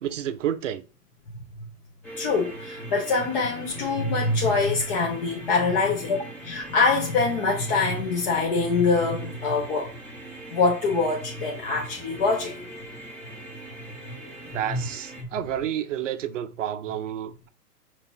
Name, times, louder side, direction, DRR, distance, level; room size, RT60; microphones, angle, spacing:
voice 1, 0.0-0.8 14.5-17.5, right 10 dB, 50° right, 0.6 m, -30 dB
sound 1, 2.0-15.2, right 1 dB, 5° left, 0.6 m, -42 dB
voice 2, 2.2-9.9 10.5-12.6 14.7-14.8, left 4 dB, 35° left, 1.0 m, -24 dB
5.1 x 3.0 x 2.9 m
hypercardioid pair, 125°, 47 cm